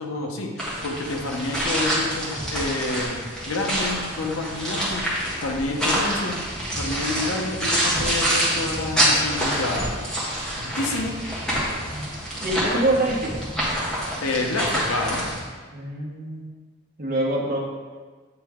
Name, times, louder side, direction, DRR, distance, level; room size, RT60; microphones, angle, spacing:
voice 1, 0.0-3.2 3.5-6.4 6.8-10.1 10.6-11.1 14.2-15.2, left 2 dB, 75° left, 1 dB, 0.8 m, -29 dB
sound 1, 0.6-15.4, equal, 5° left, 1.5 m, -26 dB
voice 2, 12.4-13.4 15.7-16.4 17.0-17.6, right 1 dB, 40° right, -3 dB, 1.1 m, -25 dB
8.3 x 3.3 x 3.6 m, 1.4 s
head